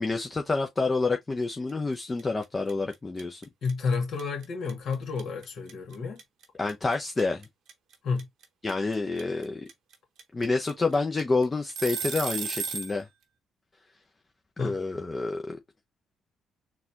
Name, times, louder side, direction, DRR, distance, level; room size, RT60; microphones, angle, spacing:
voice 1, 0.0-3.4 6.5-7.5 8.6-9.7 10.3-13.1 14.6-15.6, left 3 dB, 30° left, 0.6 m, -28 dB
sound 1, 1.7-1.9 2.2-13.0, right 6 dB, 70° right, 0.8 m, -35 dB
voice 2, 3.6-6.2 8.0-8.2 14.6-14.7, left 5 dB, 65° left, 1.7 m, -30 dB
4.0 x 2.4 x 2.8 m
supercardioid pair, 55°, 0 cm